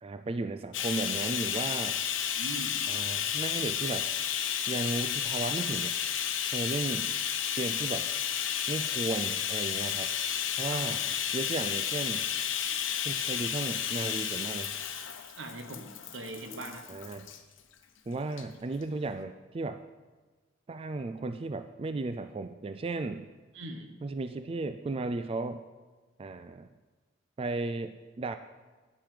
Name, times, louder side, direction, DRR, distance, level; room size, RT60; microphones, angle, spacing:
voice 1, 0.0-2.0 2.9-4.1 4.7-6.0 6.5-7.2 7.6-8.1 8.7-10.1 10.6-11.0 11.3-12.3 13.0-14.7 16.9-17.3 18.1-19.8 20.7-23.3 24.0-25.6 26.2-26.7 27.4-28.3, right 3 dB, 30° right, 10 dB, 0.3 m, -35 dB
Bathtub (filling or washing), 0.7-17.4 18.3-18.4 18.8-18.9, left 9 dB, 80° left, 0.9 m, -32 dB
voice 2, 2.3-2.8 10.7-11.0 15.3-16.9 23.5-23.9, right 2 dB, 80° right, 6 dB, 1.2 m, -41 dB
9.6 x 9.1 x 5.0 m, 1.3 s
head